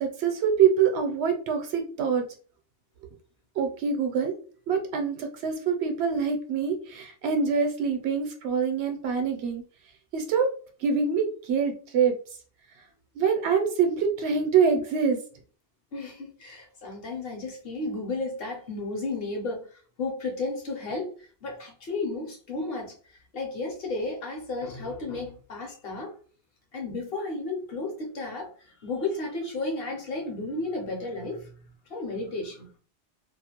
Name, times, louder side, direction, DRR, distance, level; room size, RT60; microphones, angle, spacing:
voice 1, 0.0-2.2 3.6-4.3 4.7-9.6 10.1-10.5 10.8-12.1 13.1-15.2, right 6 dB, 70° right, 0.8 m, -25 dB
voice 2, 15.9-22.9 23.3-26.2 26.7-28.5 28.8-31.5 31.9-32.7, left 3 dB, 60° left, 0.8 m, -33 dB
2.4 x 2.1 x 2.8 m
omnidirectional pair, 1.2 m